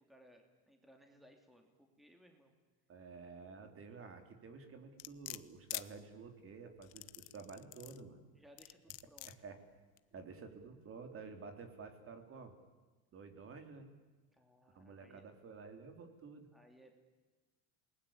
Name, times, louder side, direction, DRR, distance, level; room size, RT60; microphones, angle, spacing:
voice 1, 0.0-2.5 8.3-9.3 14.3-15.2 16.5-17.0, equal, ahead, 4 dB, 2.9 m, -63 dB
voice 2, 2.9-8.2 9.3-9.6 10.1-12.6 13.1-13.9 14.8-16.5, right 4 dB, 35° right, 6 dB, 3.7 m, -51 dB
sound 1, 5.0-5.9 6.8-8.0 8.6-9.3 10.0-10.1, left 23 dB, 85° left, 1.2 m, -45 dB
28.5 x 21.0 x 8.8 m, 1.3 s
cardioid pair, 140°, 38 cm